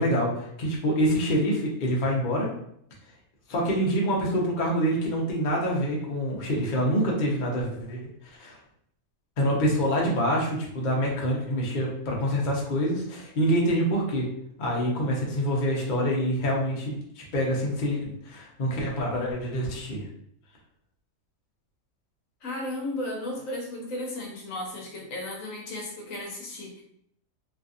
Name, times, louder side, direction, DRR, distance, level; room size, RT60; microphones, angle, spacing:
voice 1, 0.0-2.5 3.5-8.0 8.4-8.6 9.4-14.3 14.6-20.0, equal, 45° left, -2 dB, 0.6 m, -26 dB
voice 2, 22.4-26.8, left 1 dB, 65° left, -1 dB, 1.1 m, -34 dB
3.1 x 2.6 x 2.4 m, 0.70 s
omnidirectional pair, 1.6 m